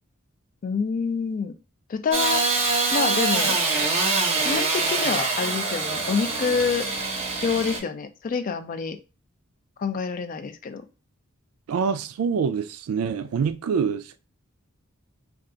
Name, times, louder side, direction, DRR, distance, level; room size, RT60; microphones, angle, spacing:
voice 1, 0.6-1.5 1.9-2.4 2.9-3.6 4.4-6.9 7.4-9.0 9.8-10.8, left 5 dB, 40° left, 0.3 m, -27 dB
Engine starting / Sawing, 2.1-7.8, right 3 dB, 30° right, 0.7 m, -24 dB
voice 2, 11.7-14.2, right 6 dB, 90° right, 0.3 m, -25 dB
2.3 x 2.3 x 3.7 m
head